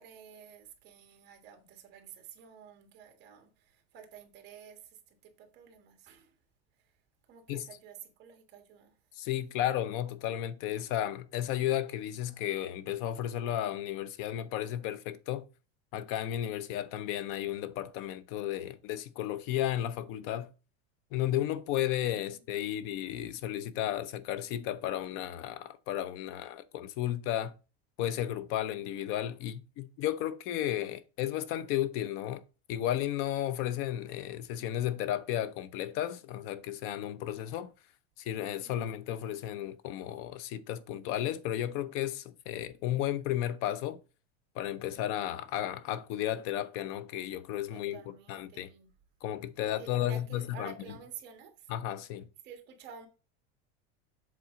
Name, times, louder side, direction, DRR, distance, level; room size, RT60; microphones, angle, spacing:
voice 1, 0.0-6.3 7.3-8.9 22.1-22.7 38.6-38.9 47.7-48.9 49.6-51.7 52.4-53.1, right 7 dB, 35° right, 1.7 m, -51 dB
voice 2, 9.2-15.4 15.9-20.5 21.1-27.5 28.0-32.4 32.7-37.7 38.2-44.0 44.5-48.0 48.3-48.7 49.2-50.7 51.7-52.3, left 12 dB, 45° left, 0.6 m, -33 dB
7.5 x 3.6 x 5.0 m
supercardioid pair, 160°, 30 cm